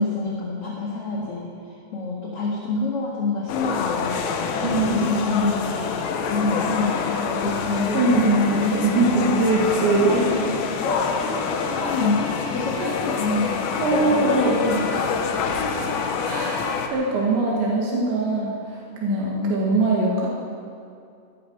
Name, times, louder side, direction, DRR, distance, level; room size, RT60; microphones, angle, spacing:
voice 1, 0.0-5.8 6.3-9.4 9.9-10.5 10.8-12.2 12.5-15.0 15.4-15.7 16.5-16.8 19.1-19.6, left 3 dB, 55° left, -4 dB, 1.7 m, -27 dB
sound 1, 3.5-16.9, left 5 dB, 80° left, 3.2 m, -27 dB
voice 2, 4.6-5.1 7.9-8.6 8.8-10.2 12.8-13.0 13.8-14.6 14.9-15.1 16.2-20.3, right 3 dB, 80° right, -3 dB, 4.3 m, -22 dB
18.0 x 13.0 x 5.7 m, 2.4 s
omnidirectional pair, 5.1 m